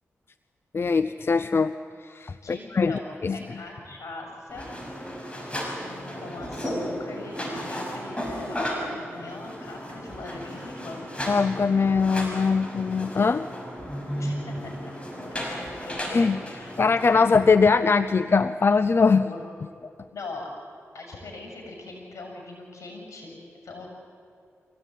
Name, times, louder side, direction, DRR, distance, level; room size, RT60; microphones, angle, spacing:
voice 1, 0.7-1.7 2.1-2.9 3.2-3.4 11.3-13.5 16.1-16.4 16.8-19.2, left 4 dB, 50° left, 13 dB, 0.6 m, -21 dB
voice 2, 2.4-4.7 5.7-11.1 14.1-14.9 15.8-16.7 19.2-19.5 20.1-20.5 20.9-23.9, left 2 dB, 80° left, 1 dB, 6.6 m, -41 dB
sound 1, 4.5-17.1, equal, 20° left, 5.9 m, -34 dB
Thump thud, 4.5-4.9 6.4-6.7 8.2-8.6 10.1-10.4 11.9-12.3 13.8-14.1 15.6-16.0 17.5-17.8, right 1 dB, 20° right, 2.7 m, -49 dB
24.0 x 17.0 x 9.3 m, 2.4 s
cardioid pair, 55°, 5 cm